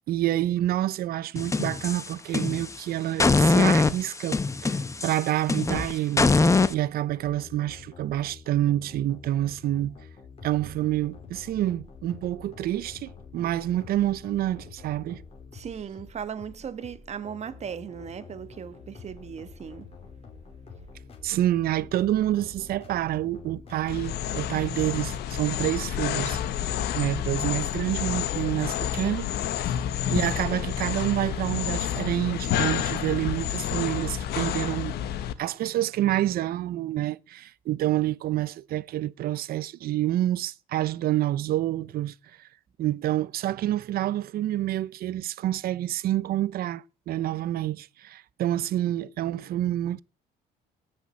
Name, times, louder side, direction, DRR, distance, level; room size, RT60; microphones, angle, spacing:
voice 1, 0.1-9.9 10.4-15.2 21.2-29.3 30.1-35.0 35.4-42.1 42.8-50.0, right 13 dB, 65° right, 0.7 m, -28 dB
sound 1, 1.4-2.8 3.2-6.7, left 3 dB, 15° left, 1.0 m, -23 dB
sound 2, 7.1-26.9, left 5 dB, 35° left, 4.6 m, -47 dB
voice 2, 15.5-19.9, right 7 dB, 40° right, 1.3 m, -37 dB
sound 3, 23.9-35.3, left 10 dB, 75° left, 1.2 m, -29 dB
17.0 x 6.5 x 9.6 m
cardioid pair, 110°, 17 cm